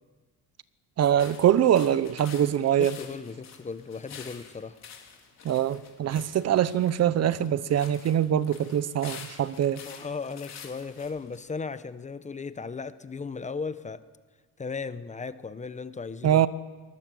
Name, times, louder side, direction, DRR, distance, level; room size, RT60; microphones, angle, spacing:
voice 1, 1.0-3.0 5.4-9.8 16.2-16.5, right 10 dB, 45° right, 16 dB, 0.8 m, -23 dB
sound 1, 1.2-11.4, left 7 dB, 50° left, 4.1 m, -47 dB
voice 2, 2.8-4.8 9.8-14.0 14.6-16.4, left 4 dB, 20° left, 13 dB, 0.8 m, -36 dB
23.5 x 20.0 x 7.7 m, 1.4 s
cardioid pair, 140°, 35 cm